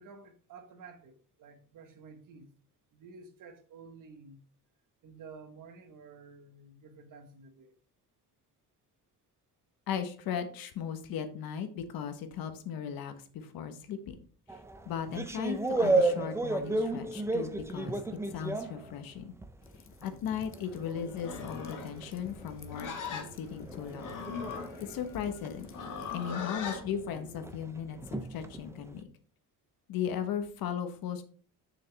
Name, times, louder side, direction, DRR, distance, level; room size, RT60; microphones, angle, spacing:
voice 1, 0.0-2.5 2.9-4.4 5.0-7.7, right 4 dB, 65° right, 1.4 m, -51 dB
voice 2, 9.9-14.2 14.5-14.6 14.8-19.3 20.0-24.1 24.8-25.7 26.1-29.1 29.9-31.2, left 8 dB, 80° left, 1.3 m, -37 dB
sound 1, 14.5-19.7 20.0-28.9, right 2 dB, 10° right, 0.4 m, -34 dB
sound 2, 19.6-26.3, left 6 dB, 35° left, 0.9 m, -52 dB
Livestock farm animals working animals, 21.1-26.8, left 6 dB, 60° left, 1.8 m, -40 dB
7.1 x 6.4 x 3.4 m
cardioid pair, 135°, 35 cm